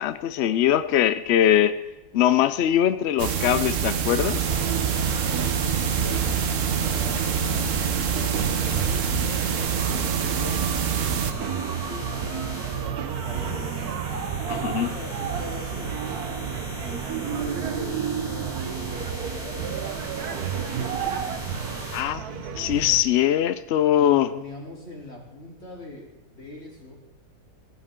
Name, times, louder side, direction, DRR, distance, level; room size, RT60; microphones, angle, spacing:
voice 1, 0.0-1.8 2.1-4.5 14.5-14.9 21.9-24.3, left 11 dB, 65° left, 12 dB, 0.6 m, -22 dB
sound 1, 3.2-11.3, right 8 dB, 60° right, 1.1 m, -26 dB
sound 2, 4.3-22.0, equal, 15° left, 3.3 m, -37 dB
sound 3, 4.4-23.0, right 8 dB, 75° right, 1.4 m, -31 dB
voice 2, 5.9-9.4 9.9-13.7 14.4-16.3 17.2-21.3 24.0-27.0, left 2 dB, 45° left, -3 dB, 3.8 m, -42 dB
17.5 x 9.9 x 3.7 m, 1.1 s
omnidirectional pair, 1.6 m